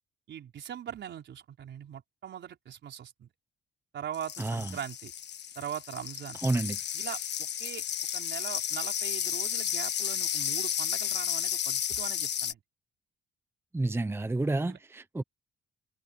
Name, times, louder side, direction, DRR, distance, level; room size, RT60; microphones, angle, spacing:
voice 1, 0.3-3.3 3.9-5.1 5.5-6.4 6.9-7.8 8.1-12.6 14.6-14.8, right 9 dB, 65° right, 5.0 m, -41 dB
sound 1, 4.1-12.5, left 9 dB, 60° left, 1.6 m, -32 dB
voice 2, 4.4-4.8 6.4-6.8 13.7-15.2, right 2 dB, 10° right, 0.8 m, -30 dB
cardioid pair, 90°, 20 cm